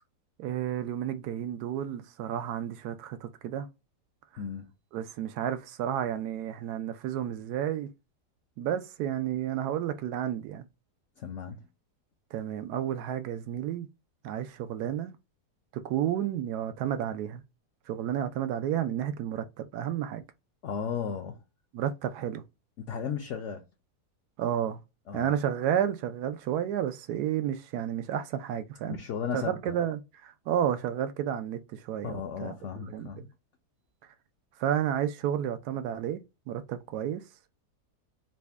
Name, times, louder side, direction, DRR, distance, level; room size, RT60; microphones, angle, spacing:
voice 1, 0.4-3.7 4.9-7.9 8.6-10.7 12.3-13.9 14.2-15.1 15.7-17.4 17.9-20.2 21.7-22.4 24.4-24.8 25.1-29.0 29.3-33.1 34.6-36.2 36.5-37.2, right 10 dB, 75° right, 1.1 m, -31 dB
voice 2, 4.4-4.7 11.2-11.6 20.6-21.4 22.8-23.7 25.1-25.3 28.9-29.8 32.0-33.3, left 7 dB, 65° left, 0.7 m, -35 dB
4.1 x 2.1 x 3.4 m
omnidirectional pair, 1.8 m